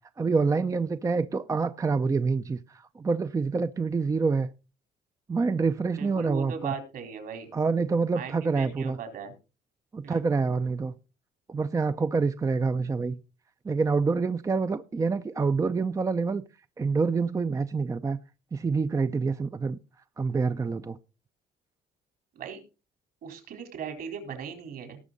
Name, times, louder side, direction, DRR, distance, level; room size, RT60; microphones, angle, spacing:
voice 1, 0.2-4.5 5.3-6.7 7.5-9.0 9.9-10.9 11.5-13.2 13.6-16.4 16.8-18.2 18.5-19.8 20.2-21.0, right 4 dB, 20° right, 0.5 m, -27 dB
voice 2, 5.9-7.5 8.1-9.3 10.0-10.2 22.4-22.6 23.2-25.0, right 6 dB, 65° right, 4.0 m, -38 dB
18.5 x 6.3 x 4.0 m
cardioid pair, 110°, 17 cm